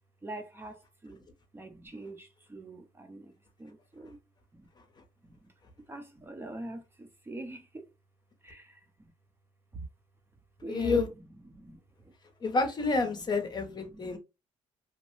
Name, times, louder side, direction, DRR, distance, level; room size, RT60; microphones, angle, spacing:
voice 1, 0.2-1.2 1.5-3.3 3.6-4.2 4.5-4.7 5.2-5.5 5.9-7.9 8.4-9.1 9.7-9.9 10.6-11.1 11.5-12.1 13.1-14.2, right 2 dB, 15° right, 0.6 m, -44 dB
voice 2, 10.7-11.1 12.4-14.2, left 3 dB, 35° left, 0.7 m, -29 dB
3.0 x 2.1 x 3.0 m
cardioid pair, 105°, 13 cm